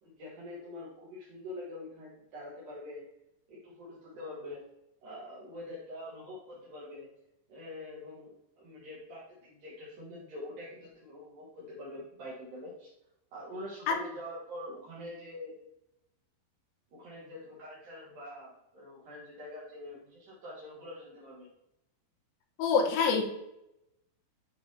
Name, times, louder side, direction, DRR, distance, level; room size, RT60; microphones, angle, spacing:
voice 1, 0.0-3.0 3.5-4.7 5.0-7.1 7.5-12.9 13.3-15.5 16.9-21.5, left 1 dB, 65° right, -6 dB, 2.5 m, -45 dB
voice 2, 22.6-23.2, left 5 dB, 90° left, 2 dB, 3.5 m, -25 dB
9.9 x 4.1 x 2.7 m, 0.87 s
omnidirectional pair, 5.4 m